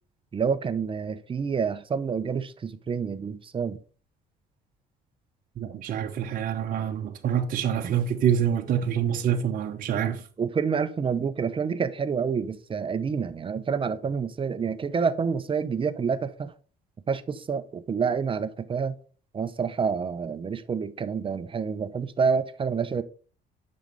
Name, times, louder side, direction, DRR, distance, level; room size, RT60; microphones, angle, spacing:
voice 1, 0.3-3.8 10.4-16.5 17.1-19.0 19.3-23.0, right 6 dB, 30° right, 0.9 m, -28 dB
voice 2, 5.6-10.2, right 8 dB, 55° right, 1.0 m, -26 dB
8.8 x 6.5 x 4.0 m
cardioid pair, 110°, 17 cm